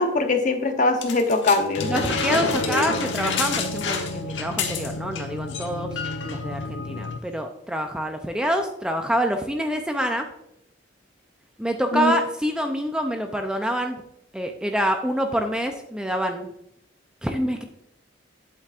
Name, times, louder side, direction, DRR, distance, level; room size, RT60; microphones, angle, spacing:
voice 1, 0.0-1.9 2.5-2.9 11.9-12.2, left 2 dB, 45° left, 5 dB, 0.9 m, -22 dB
sound 1, 1.0-5.2 5.5-5.7 6.0-6.4 7.1-7.2, left 5 dB, 85° left, 1.2 m, -28 dB
sound 2, 1.8-7.2, left 1 dB, 65° left, 0.5 m, -32 dB
voice 2, 1.9-5.9 6.2-10.3 11.6-14.0 14.3-16.5 17.2-17.6, equal, 5° right, 5 dB, 0.5 m, -26 dB
8.3 x 8.1 x 2.5 m, 0.78 s
head